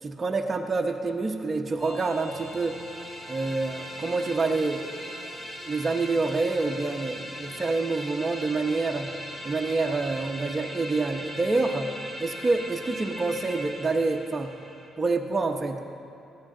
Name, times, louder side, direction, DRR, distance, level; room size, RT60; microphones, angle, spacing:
voice 1, 0.0-2.8 3.3-4.8 5.7-9.1 9.4-11.9 12.2-14.5 15.0-15.8, right 3 dB, 30° right, 2 dB, 1.0 m, -27 dB
sound 1, 1.8-14.9, equal, 20° left, 2.4 m, -39 dB
19.0 x 15.5 x 3.9 m, 2.6 s
cardioid pair, 90°, 0 cm